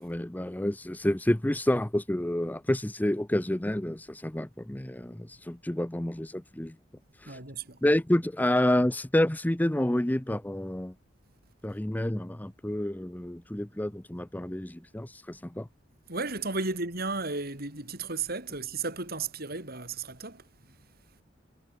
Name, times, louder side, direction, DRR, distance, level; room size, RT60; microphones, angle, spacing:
voice 1, 0.0-6.8 7.2-7.4 7.8-10.9 11.6-15.7, left 1 dB, 10° left, 0.6 m, -29 dB
voice 2, 7.3-7.8 16.1-20.8, right 3 dB, 55° right, 7.8 m, -34 dB
head